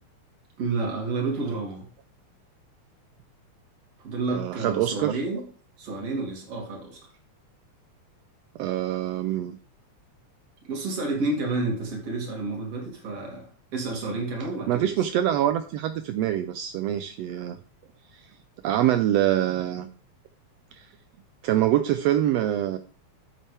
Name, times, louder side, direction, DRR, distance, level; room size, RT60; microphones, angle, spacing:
voice 1, 0.6-1.9 4.0-5.4 5.8-7.0 10.7-15.1, right 3 dB, 55° right, 0 dB, 3.7 m, -30 dB
voice 2, 4.3-5.2 8.5-9.6 14.7-17.6 18.1-18.3 18.6-19.9 20.7-20.9 21.4-22.8, right 12 dB, 80° right, 10 dB, 1.5 m, -25 dB
8.9 x 8.9 x 3.4 m, 0.40 s
omnidirectional pair, 3.5 m